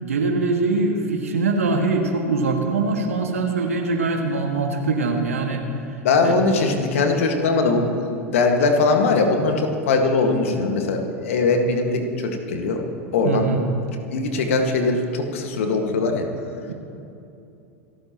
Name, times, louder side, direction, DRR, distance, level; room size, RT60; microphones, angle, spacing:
voice 1, 0.0-5.6 6.2-6.7 13.2-13.6 16.7-16.8, right 3 dB, 80° right, 3 dB, 1.9 m, -23 dB
voice 2, 6.0-12.8 13.1-13.5 14.1-16.2, left 3 dB, 70° left, 4 dB, 1.8 m, -21 dB
27.0 x 13.0 x 3.0 m, 2.7 s
figure-of-eight pair, 85°, 7 cm